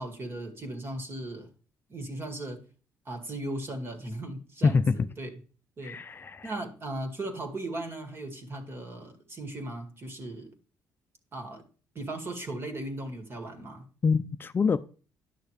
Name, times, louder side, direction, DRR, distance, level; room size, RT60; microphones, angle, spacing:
voice 1, 0.0-1.5 1.9-2.6 3.1-5.4 5.8-6.0 6.4-10.5 11.3-11.6 11.9-13.9, right 1 dB, 35° right, 2.0 m, -37 dB
voice 2, 4.6-5.1 5.8-6.5 14.0-14.8, left 5 dB, 35° left, 0.4 m, -25 dB
10.5 x 6.5 x 3.2 m
cardioid pair, 90°, 7 cm